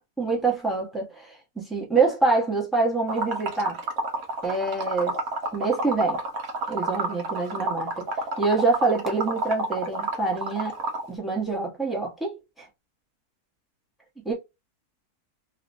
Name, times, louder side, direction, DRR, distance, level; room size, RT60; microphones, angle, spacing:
voice 1, 0.2-3.8 4.4-5.1 5.5-6.2 6.7-8.1 8.4-10.8 11.1-12.6 14.2-14.3, right 3 dB, ahead, 1.2 m, -25 dB
Liquid, 3.1-11.1, right 2 dB, 65° right, 1.3 m, -29 dB
3.1 x 3.1 x 2.7 m
omnidirectional pair, 1.7 m